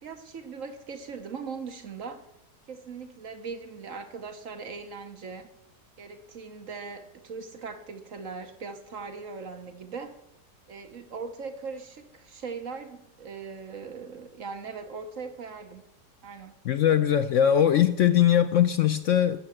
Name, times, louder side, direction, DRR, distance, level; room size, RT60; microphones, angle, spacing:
voice 1, 0.0-2.3 2.7-5.5 6.0-10.2 10.7-15.8 16.2-16.6, right 5 dB, 55° right, 1.3 m, -40 dB
voice 2, 16.6-19.4, left 10 dB, 70° left, 0.7 m, -21 dB
12.5 x 7.1 x 7.7 m
omnidirectional pair, 1.8 m